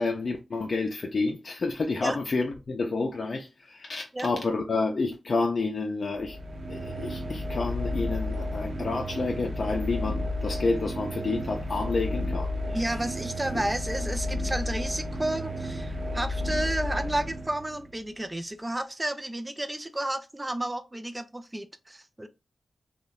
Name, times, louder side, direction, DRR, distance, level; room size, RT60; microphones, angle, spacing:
voice 1, 0.0-6.4 6.7-12.5, left 3 dB, 60° left, 0.4 m, -29 dB
sound 1, 6.1-18.0, left 1 dB, 65° right, 0.7 m, -32 dB
voice 2, 12.7-22.3, right 1 dB, 15° right, 0.3 m, -32 dB
3.0 x 2.0 x 2.3 m
cardioid pair, 75°, 0 cm